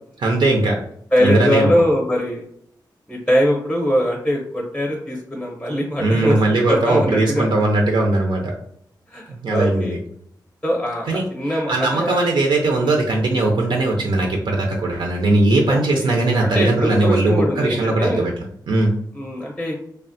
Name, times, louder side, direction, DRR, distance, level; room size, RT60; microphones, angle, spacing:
voice 1, 0.2-0.8 1.2-1.7 6.0-8.5 9.3-10.0 11.1-19.0, right 2 dB, 85° right, 1 dB, 0.5 m, -19 dB
voice 2, 1.1-2.4 3.1-6.4 6.7-7.4 9.1-9.2 9.5-10.0 10.6-12.2 12.8-12.9 15.7-16.1 16.4-18.2 19.1-19.8, equal, 5° left, -1 dB, 0.6 m, -22 dB
3.1 x 2.0 x 2.6 m, 0.69 s
wide cardioid pair, 95°, 8 cm